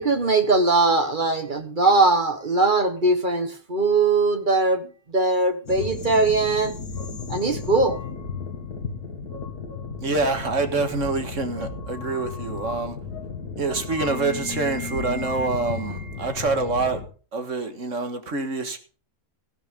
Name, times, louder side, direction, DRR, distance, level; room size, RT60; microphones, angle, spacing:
voice 1, 0.0-6.7 7.3-8.0, right 3 dB, 35° right, 1.3 m, -21 dB
sound 1, 5.7-17.1, left 5 dB, 75° left, 2.7 m, -34 dB
voice 2, 10.0-13.0 13.6-17.0 17.3-18.8, right 3 dB, 50° right, 1.9 m, -26 dB
15.0 x 12.0 x 3.7 m
omnidirectional pair, 1.7 m